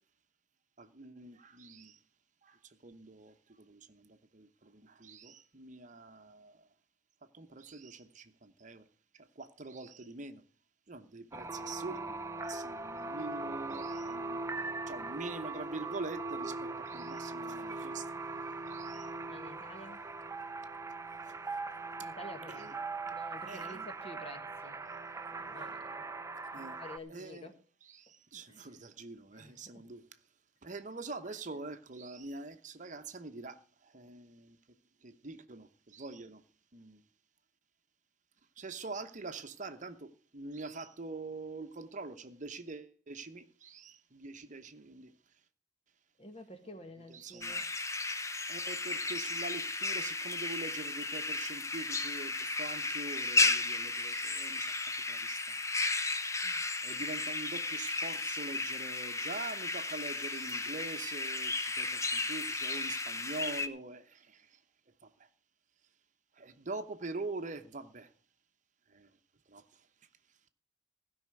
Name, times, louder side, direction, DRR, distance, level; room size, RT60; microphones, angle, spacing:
voice 1, 0.8-2.0 2.4-6.7 7.3-8.8 9.1-10.4 10.9-14.4 14.9-18.1 18.7-19.1 21.2-21.3 22.5-22.7 23.5-23.9 26.5-26.8 27.1-27.5 27.8-30.2 30.6-34.6 35.0-36.4 36.7-37.0 38.6-45.1 47.1-47.7 48.5-55.6 56.4-64.6 65.0-65.3 66.3-68.1 68.9-69.2 69.5-69.9, right 3 dB, 45° right, 0.9 m, -45 dB
sound 1, 11.3-27.0, right 3 dB, 15° right, 0.6 m, -40 dB
voice 2, 19.2-20.0 22.0-22.7 23.1-24.8 25.3-26.0 26.8-27.5 28.5-28.7 29.3-29.8 46.2-47.7 56.4-56.6, left 1 dB, 35° left, 1.6 m, -50 dB
sound 2, 47.4-63.7, left 3 dB, 15° left, 0.8 m, -34 dB
16.0 x 5.7 x 7.7 m
head